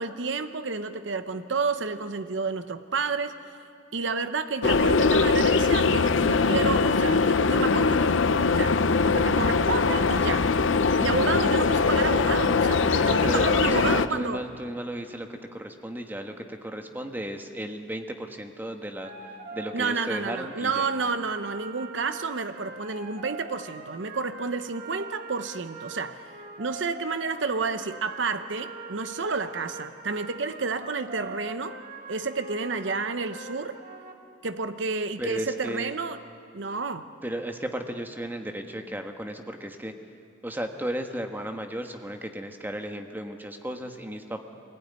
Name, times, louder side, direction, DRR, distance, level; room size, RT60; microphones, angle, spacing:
voice 1, 0.0-3.4 3.9-8.1 8.5-10.5 11.0-14.4 19.7-26.3 26.6-31.8 32.1-33.8 34.4-36.2 36.5-37.1, right 4 dB, 70° right, 10 dB, 0.9 m, -30 dB
sound 1, 4.6-14.1, left 4 dB, 85° left, 0.7 m, -22 dB
voice 2, 12.9-19.1 19.5-20.8 35.2-35.9 37.2-39.9 40.4-44.4, right 1 dB, 10° right, 5 dB, 1.3 m, -34 dB
sound 2, 19.0-34.1, right 3 dB, 50° right, 1.8 m, -43 dB
22.5 x 16.5 x 9.5 m, 2.4 s
head